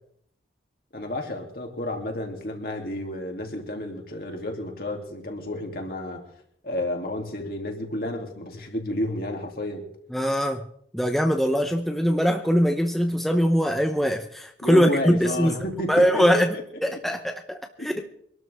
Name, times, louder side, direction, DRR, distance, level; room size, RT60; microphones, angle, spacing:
voice 1, 0.9-6.2 6.6-9.8 14.6-16.6 16.9-17.2 17.8-18.0, left 1 dB, 55° left, 1 dB, 3.0 m, -31 dB
voice 2, 10.1-10.7 10.9-15.5 15.9-16.5 16.8-18.0, equal, ahead, 4 dB, 0.8 m, -22 dB
25.0 x 12.5 x 3.6 m, 0.68 s
head